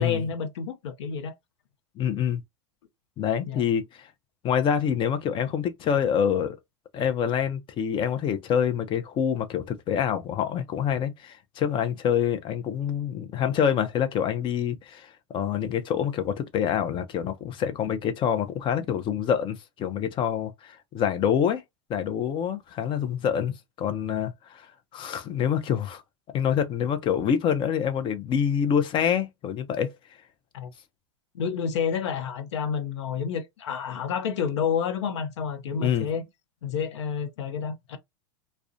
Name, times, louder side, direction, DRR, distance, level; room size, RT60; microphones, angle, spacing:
voice 1, 0.0-1.3 3.4-3.6 30.5-30.7 31.3-36.2 36.6-38.0, left 7 dB, 75° left, 0.6 m, -29 dB
voice 2, 2.0-2.4 3.2-4.1 4.4-6.6 6.9-21.6 21.9-24.7 24.9-26.0 26.3-29.9 35.8-36.1, left 8 dB, 35° left, 0.5 m, -26 dB
2.3 x 2.2 x 2.5 m
hypercardioid pair, 100°, 15 cm